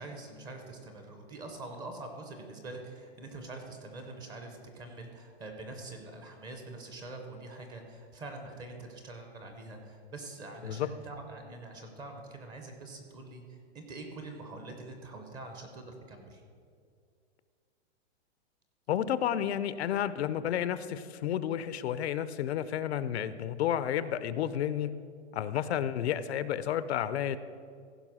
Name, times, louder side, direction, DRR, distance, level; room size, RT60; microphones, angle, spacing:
voice 1, 0.0-16.4, right 2 dB, 10° right, 4 dB, 0.6 m, -45 dB
voice 2, 18.9-24.9 25.3-27.4, left 10 dB, 65° left, 15 dB, 0.6 m, -31 dB
15.5 x 5.3 x 6.2 m, 2.2 s
supercardioid pair, 170°, 34 cm